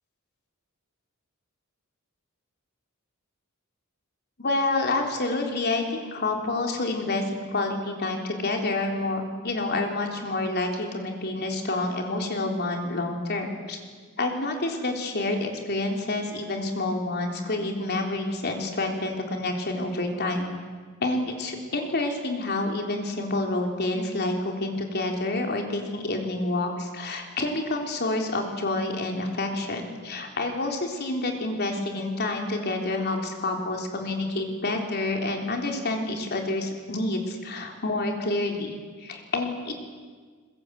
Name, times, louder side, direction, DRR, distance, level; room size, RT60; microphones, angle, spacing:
voice 1, 4.4-13.8 14.2-20.5 21.0-39.7, left 2 dB, 50° left, 2 dB, 3.8 m, -28 dB
25.5 x 22.0 x 8.3 m, 1.5 s
head